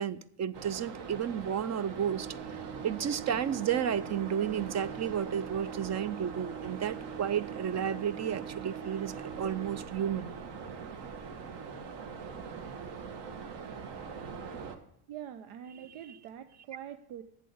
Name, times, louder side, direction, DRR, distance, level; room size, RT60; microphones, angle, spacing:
voice 1, 0.0-2.3 2.8-10.3 16.1-16.2, right 8 dB, 35° right, 17 dB, 0.5 m, -32 dB
sound 1, 0.5-14.8, right 5 dB, 55° right, 1.6 m, -42 dB
sound 2, 2.1-9.8, right 10 dB, 15° right, 1.0 m, -45 dB
voice 2, 15.1-17.2, right 10 dB, 85° right, 9 dB, 0.9 m, -44 dB
8.5 x 7.5 x 8.5 m, 0.72 s
cardioid pair, 150°, 49 cm